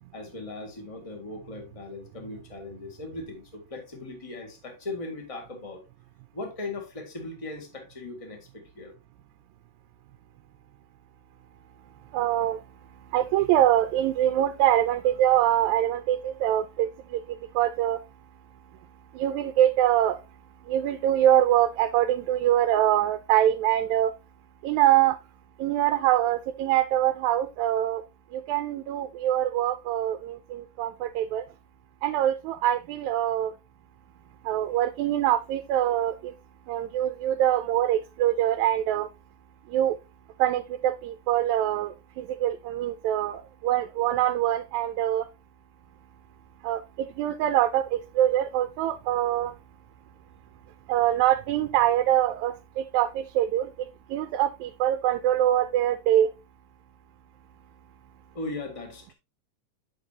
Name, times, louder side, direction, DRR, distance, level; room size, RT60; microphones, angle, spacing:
voice 1, 0.1-5.8 6.3-8.9 58.3-59.1, left 2 dB, 15° left, 1.4 m, -38 dB
voice 2, 12.1-12.6 13.1-18.0 19.1-20.2 20.7-24.1 24.6-25.2 25.6-28.0 28.3-31.5 32.0-33.5 34.4-36.3 36.7-39.1 39.7-40.0 40.4-45.3 46.6-49.5 50.9-56.3, right 12 dB, 80° right, 1.9 m, -24 dB
8.9 x 6.0 x 2.8 m
omnidirectional pair, 3.4 m